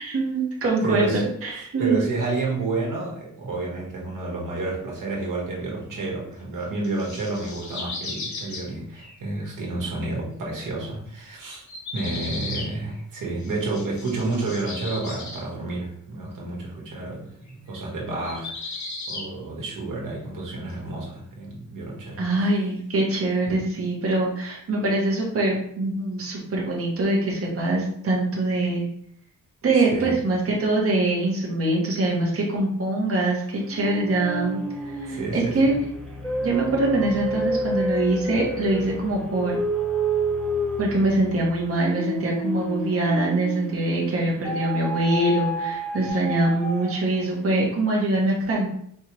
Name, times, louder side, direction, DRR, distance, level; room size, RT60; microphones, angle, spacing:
voice 1, 0.0-2.0 22.2-28.8 29.6-34.6 34.8-35.8 36.4-39.6 40.8-48.7, right 2 dB, 40° right, -3 dB, 1.1 m, -23 dB
voice 2, 0.8-1.2 1.8-11.6 11.9-17.4 17.7-18.7 19.1-22.3 23.5-23.7 29.9-30.1 35.1-35.8, right 2 dB, 65° right, -3 dB, 1.5 m, -30 dB
sound 1, 6.8-9.4 11.5-15.4 17.5-17.8 18.2-19.3 20.7-20.8, left 3 dB, 55° left, 1.0 m, -36 dB
sound 2, 33.7-43.9 44.4-47.2, right 1 dB, ahead, 0.5 m, -29 dB
4.4 x 3.2 x 3.0 m, 0.67 s
wide cardioid pair, 180°, 35 cm